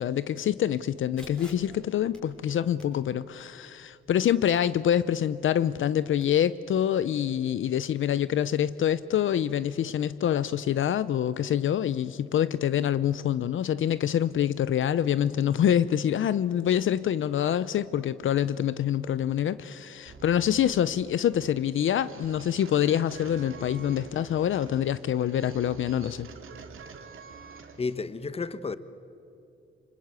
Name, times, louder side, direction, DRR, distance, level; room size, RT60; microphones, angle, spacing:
voice 1, 0.0-26.3, left 10 dB, 70° left, 0.6 m, -26 dB
sound 1, 1.2-6.2, equal, 5° left, 4.9 m, -54 dB
sound 2, 20.1-28.0, right 5 dB, 75° right, 2.4 m, -46 dB
voice 2, 27.8-28.8, left 4 dB, 30° left, 1.1 m, -32 dB
27.5 x 25.0 x 8.2 m
cardioid pair, 120°, 21 cm